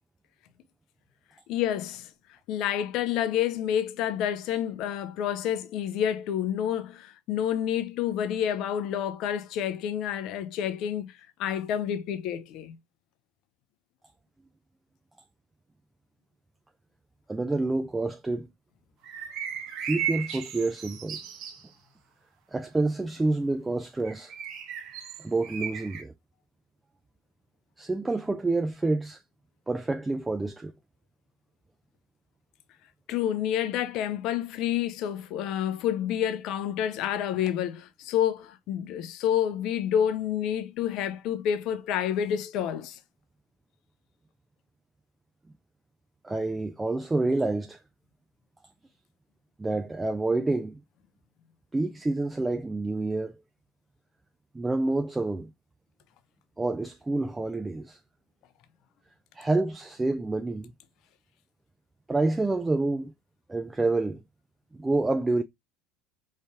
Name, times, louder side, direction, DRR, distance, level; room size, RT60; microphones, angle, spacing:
voice 1, 1.5-2.1 2.5-11.1 11.4-12.8 33.1-43.0, left 10 dB, 50° left, 0.7 m, -29 dB
voice 2, 17.3-18.5 19.8-21.2 22.5-24.3 25.2-26.1 27.8-29.2 29.7-30.7 46.2-47.8 49.6-50.8 51.7-53.3 54.5-55.5 56.6-58.0 59.3-60.7 62.1-63.1 63.5-64.2 64.7-65.4, right 2 dB, 15° right, 0.5 m, -28 dB
sound 1, 19.0-21.6 24.0-26.0, right 8 dB, 50° right, 1.1 m, -36 dB
5.2 x 3.2 x 2.4 m
figure-of-eight pair, 70°, 0 cm